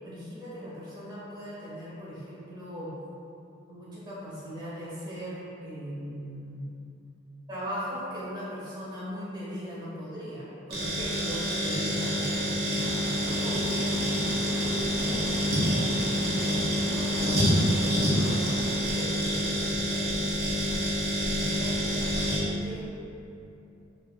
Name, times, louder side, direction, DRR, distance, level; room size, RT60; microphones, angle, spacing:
voice 1, 0.0-2.9 3.7-6.7 7.5-20.8 21.3-23.0, equal, 20° right, -10 dB, 1.3 m, -39 dB
sound 1, 10.7-22.4, equal, 50° right, 1.2 m, -27 dB
sound 2, 12.8-18.7, equal, 60° left, 1.4 m, -40 dB
4.6 x 3.7 x 2.3 m, 2.8 s
head